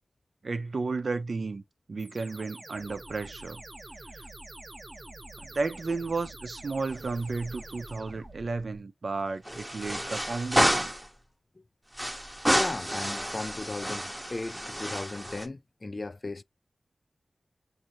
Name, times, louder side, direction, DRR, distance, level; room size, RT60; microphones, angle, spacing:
voice 1, 0.4-1.6 1.9-3.6 4.1-4.3 5.4-10.9, right 3 dB, 70° right, 0.6 m, -33 dB
sound 1, 2.0-8.8, right 2 dB, 40° right, 1.0 m, -46 dB
sound 2, 6.9-7.6 7.9-8.0 9.4-11.1 11.9-15.5, equal, 5° right, 0.9 m, -29 dB
voice 2, 12.5-16.4, left 2 dB, 40° left, 0.3 m, -36 dB
6.2 x 2.7 x 2.8 m
cardioid pair, 55°, 0 cm